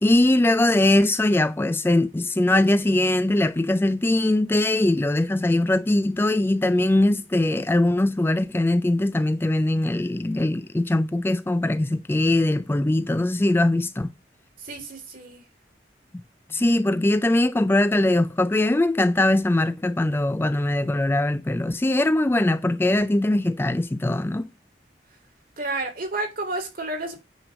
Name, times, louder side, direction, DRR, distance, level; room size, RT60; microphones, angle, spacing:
voice 1, 0.0-14.1 16.5-24.5, left 1 dB, 15° left, 0.3 m, -21 dB
voice 2, 14.6-15.4 25.6-27.2, right 2 dB, 55° right, 3.0 m, -30 dB
8.9 x 3.2 x 6.2 m
head